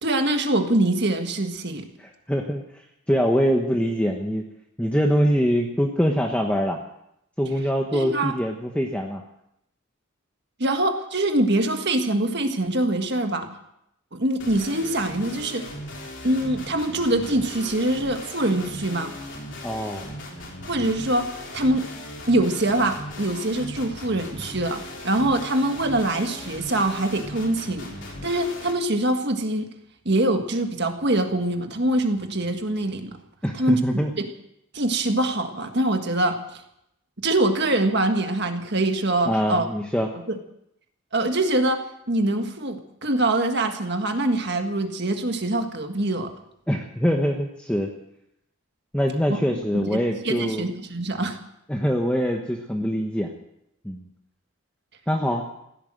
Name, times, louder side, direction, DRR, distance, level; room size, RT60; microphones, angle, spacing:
voice 1, 0.0-1.9 7.9-8.3 10.6-13.5 14.1-15.6 16.2-19.1 20.7-21.8 22.3-27.9 28.2-29.7 30.0-33.2 33.6-34.3 34.7-36.6 37.2-39.7 41.1-41.8 42.1-46.3 49.3-49.4 49.7-51.4, right 1 dB, 50° right, 5 dB, 1.7 m, -24 dB
voice 2, 2.0-2.8 3.1-4.4 4.8-6.8 7.4-9.2 19.6-20.1 33.4-34.1 39.2-40.1 46.7-47.9 48.9-50.7 51.7-53.3 53.8-54.1 55.1-55.4, equal, 5° left, 1 dB, 1.1 m, -24 dB
sound 1, 14.4-28.7, left 1 dB, 55° left, 3.5 m, -38 dB
16.0 x 12.0 x 7.6 m, 0.79 s
head